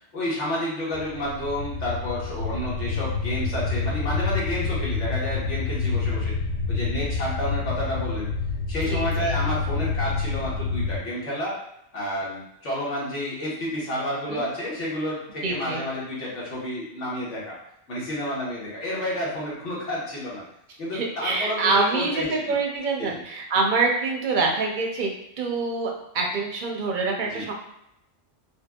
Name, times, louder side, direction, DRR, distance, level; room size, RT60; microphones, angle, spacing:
voice 1, 0.1-6.3 6.7-8.3 8.7-11.5 11.9-17.6 17.9-20.4 20.8-22.6 23.0-23.2 27.3-27.5, left 1 dB, 75° left, -7 dB, 1.5 m, -30 dB
sound 1, 0.9-11.0, left 4 dB, 60° left, 0.5 m, -28 dB
voice 2, 8.9-9.4 14.3-14.5 15.4-15.8 20.9-25.1 25.4-27.5, right 3 dB, 55° right, 0 dB, 0.6 m, -25 dB
4.5 x 2.2 x 2.3 m, 0.80 s
omnidirectional pair, 1.2 m